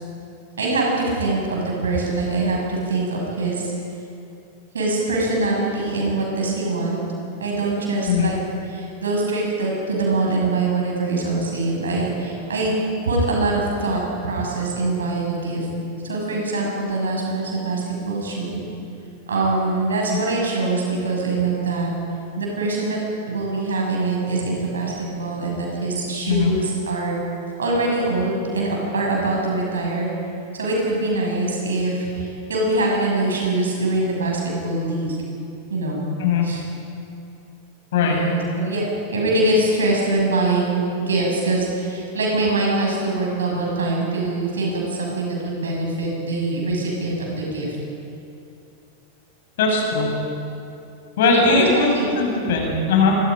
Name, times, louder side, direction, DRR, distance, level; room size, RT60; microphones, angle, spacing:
voice 1, 0.6-3.7 4.7-7.0 7.4-8.4 8.7-12.8 13.0-15.7 16.0-18.6 19.3-21.9 22.4-23.0 23.3-27.2 27.6-30.1 30.5-35.2 35.7-36.0 36.4-36.6 38.0-38.8 39.1-47.7 51.3-52.1, right 2 dB, 70° right, -2 dB, 7.2 m, -23 dB
voice 2, 49.6-50.1 51.2-53.2, left 4 dB, 55° left, 0 dB, 6.6 m, -19 dB
26.5 x 23.5 x 5.3 m, 2.7 s
figure-of-eight pair, 90°, 0 cm